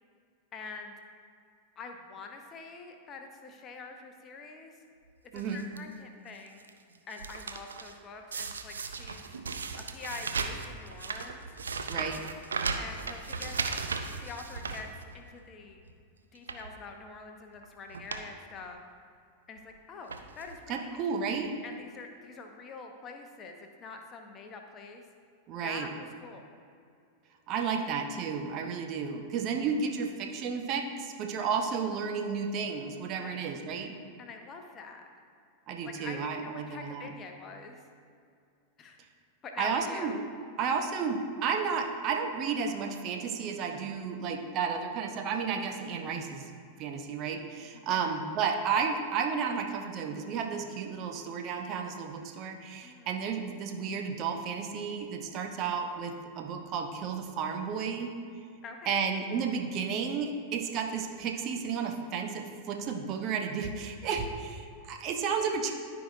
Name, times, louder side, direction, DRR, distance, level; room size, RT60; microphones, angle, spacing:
voice 1, 0.5-0.9 1.8-4.8 5.2-6.6 7.1-9.2 9.7-11.5 12.8-13.6 14.2-14.9 15.1-15.8 16.3-18.8 19.5-25.0 25.6-26.4 33.2-33.5 34.2-35.1 35.8-37.8 38.8-39.0 39.4-40.2 47.6-48.1 52.8-53.1 58.6-59.1, left 4 dB, 30° left, 4 dB, 0.8 m, -45 dB
voice 2, 5.3-5.6 11.9-12.2 20.7-21.5 25.5-25.9 27.5-33.9 35.7-37.1 39.6-40.2 40.6-46.5 46.8-58.1 58.9-65.7, right 6 dB, 35° right, 3 dB, 0.8 m, -32 dB
sound 1, 5.3-5.8 6.3-6.7 6.9-7.9 8.3-15.4 15.8-15.9 16.3-16.7 17.5-17.6 17.9-18.3 18.6-18.7 19.6-19.7 20.1-20.6 21.3-21.4 21.6-21.7, right 4 dB, 70° right, 0.5 m, -36 dB
14.0 x 4.8 x 2.7 m, 2.4 s
figure-of-eight pair, 90°, 0 cm